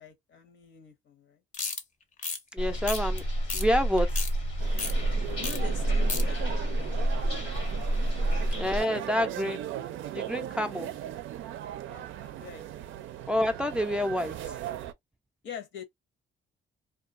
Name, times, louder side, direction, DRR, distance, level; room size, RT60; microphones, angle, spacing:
voice 1, 0.0-1.4 5.4-7.4 8.2-8.9 11.9-12.7 15.4-15.8, left 7 dB, 70° left, 0.8 m, -45 dB
sound 1, 1.5-1.8 2.2-2.4 2.9-3.2 3.5-3.6 4.0-4.3 4.8-4.9 5.4-5.6 5.8-6.2, left 5 dB, 40° left, 0.6 m, -32 dB
voice 2, 2.5-3.2 3.5-4.2 8.6-9.7 10.1-10.9 13.3-14.5, left 1 dB, 5° right, 0.4 m, -28 dB
sound 2, 2.6-8.8, right 1 dB, 85° left, 1.1 m, -28 dB
sound 3, 4.6-14.9, right 12 dB, 80° right, 0.4 m, -38 dB
2.3 x 2.3 x 2.4 m
cardioid pair, 90°, 20 cm